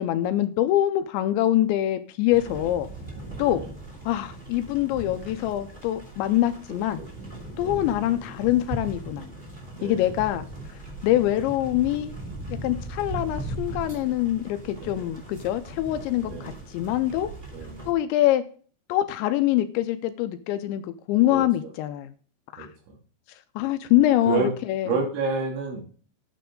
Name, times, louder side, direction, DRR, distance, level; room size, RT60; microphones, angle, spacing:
voice 1, 0.0-2.9 3.4-3.6 4.1-7.0 7.6-9.3 9.8-10.5 11.0-12.1 12.5-17.3 17.9-18.4 18.9-22.1 22.5-22.7 23.6-25.0, left 13 dB, 80° left, 10 dB, 2.9 m, -24 dB
sound 1, 2.3-17.9, right 2 dB, 15° right, 1.9 m, -39 dB
voice 2, 3.4-3.7 7.6-7.8 9.7-10.1 14.8-15.1 16.2-16.6 17.5-17.8 21.3-21.7 22.6-23.0 24.3-24.5 24.9-25.8, right 4 dB, 80° right, 1 dB, 5.1 m, -30 dB
10.0 x 9.2 x 3.8 m, 0.41 s
omnidirectional pair, 5.3 m